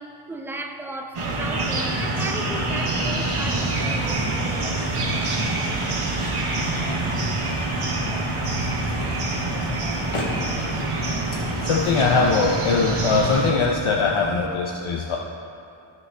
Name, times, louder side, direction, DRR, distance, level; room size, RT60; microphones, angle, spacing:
voice 1, 0.0-5.0, right 2 dB, 5° right, 3 dB, 0.6 m, -36 dB
sound 1, 1.1-13.5, right 2 dB, 85° right, 1.2 m, -26 dB
sound 2, 2.5-14.5, right 6 dB, 65° right, 0.7 m, -37 dB
sound 3, 4.8-13.6, left 2 dB, 90° left, 1.3 m, -42 dB
voice 2, 8.9-9.2 11.4-15.2, left 4 dB, 70° left, -1 dB, 0.7 m, -22 dB
15.5 x 5.1 x 3.4 m, 2.7 s
wide cardioid pair, 90°, 50 cm